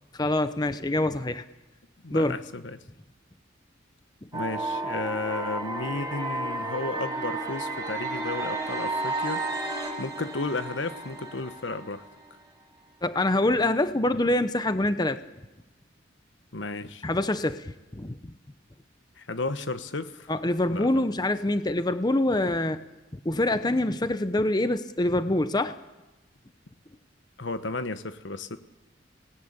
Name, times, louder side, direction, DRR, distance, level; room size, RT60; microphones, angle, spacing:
voice 1, 0.1-1.4 2.1-2.4 13.0-15.2 17.0-18.3 20.3-22.8 23.1-25.8, left 1 dB, 20° left, 11 dB, 0.8 m, -25 dB
voice 2, 2.0-2.8 4.3-9.5 10.0-12.1 16.5-17.0 19.2-20.3 20.7-21.0 27.4-28.6, left 3 dB, 75° left, 11 dB, 1.2 m, -33 dB
sound 1, 4.3-12.3, right 2 dB, 20° right, 3.6 m, -32 dB
24.5 x 19.0 x 8.9 m, 1.1 s
head